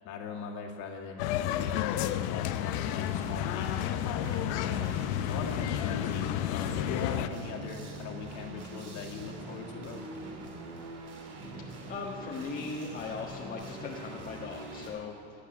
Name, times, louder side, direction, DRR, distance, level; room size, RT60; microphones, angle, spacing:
voice 1, 0.0-4.9 5.2-10.0, left 5 dB, 55° left, 0 dB, 2.2 m, -41 dB
sound 1, 1.2-7.3, left 12 dB, 70° left, 0.8 m, -31 dB
sound 2, 3.0-14.9, right 2 dB, 45° right, 2.7 m, -43 dB
voice 2, 11.9-15.4, left 4 dB, 25° left, -2 dB, 1.4 m, -39 dB
14.0 x 8.2 x 9.5 m, 2.5 s
supercardioid pair, 130°, 35 cm